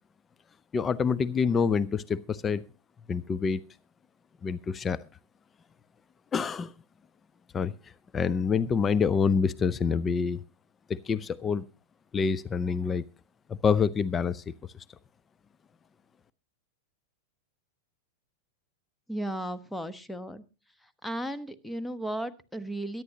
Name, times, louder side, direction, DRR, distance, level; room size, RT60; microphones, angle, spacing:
voice 1, 0.7-2.6 3.1-3.6 4.4-5.0 6.3-6.7 7.5-7.7 8.1-10.4 10.9-11.6 12.1-13.0 13.5-14.4, left 6 dB, 20° left, 17 dB, 0.6 m, -26 dB
voice 2, 19.1-20.4 20.8-23.0, right 1 dB, 5° left, 12 dB, 1.1 m, -35 dB
22.5 x 11.0 x 2.8 m, 0.32 s
figure-of-eight pair, 95°, 0 cm